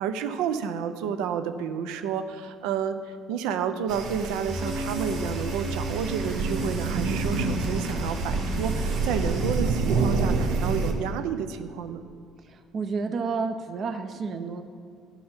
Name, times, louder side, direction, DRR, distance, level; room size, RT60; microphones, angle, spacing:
voice 1, 0.0-3.0 3.3-12.0, right 7 dB, 90° right, 10 dB, 0.5 m, -30 dB
sound 1, 3.9-10.9, right 3 dB, 70° right, 0.9 m, -28 dB
sound 2, 4.5-9.5, right 1 dB, 15° right, 1.4 m, -34 dB
voice 2, 12.4-14.6, right 4 dB, 40° right, 9 dB, 0.6 m, -31 dB
11.5 x 5.6 x 4.4 m, 2.2 s
cardioid pair, 135°, 0 cm